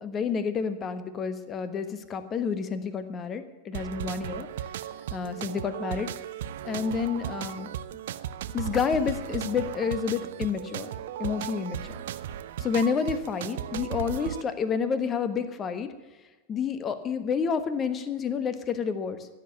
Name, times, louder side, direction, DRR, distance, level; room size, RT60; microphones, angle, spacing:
voice 1, 0.0-4.5 5.1-6.1 6.6-7.7 8.5-10.9 11.2-12.0 12.6-15.9 16.5-19.3, left 6 dB, 25° left, 11 dB, 1.3 m, -29 dB
sound 1, 3.7-14.4, right 10 dB, 55° right, 0.6 m, -36 dB
15.5 x 7.6 x 8.3 m, 1.3 s
figure-of-eight pair, 90°, 0 cm